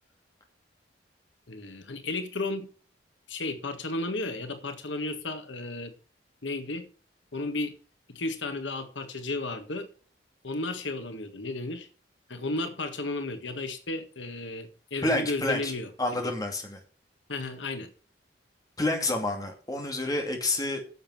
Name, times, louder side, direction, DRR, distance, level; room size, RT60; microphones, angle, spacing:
voice 1, 1.5-2.7 3.3-5.9 6.4-6.9 7.3-7.8 8.1-9.9 10.4-11.9 12.3-16.3 17.3-17.9, left 2 dB, 85° left, 8 dB, 1.7 m, -33 dB
voice 2, 15.0-15.7 16.0-16.8 18.8-20.8, left 2 dB, 20° left, 3 dB, 2.6 m, -29 dB
10.0 x 7.4 x 6.0 m, 0.39 s
head